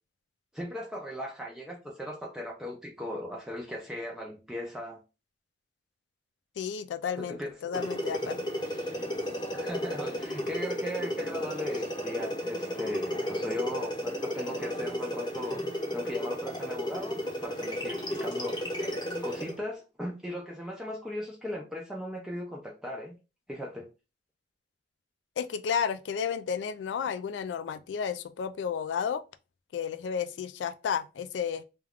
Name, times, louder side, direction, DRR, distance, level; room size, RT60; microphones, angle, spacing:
voice 1, 0.5-5.0 7.2-7.9 8.2-8.3 9.4-15.6 15.9-18.7 19.2-23.1 23.5-23.9, left 1 dB, 5° right, 0.4 m, -38 dB
voice 2, 6.6-8.4 25.4-29.2 29.7-31.6, left 7 dB, 80° left, 0.3 m, -32 dB
sound 1, 7.7-19.6, equal, 25° left, 0.8 m, -33 dB
2.3 x 2.3 x 3.4 m
head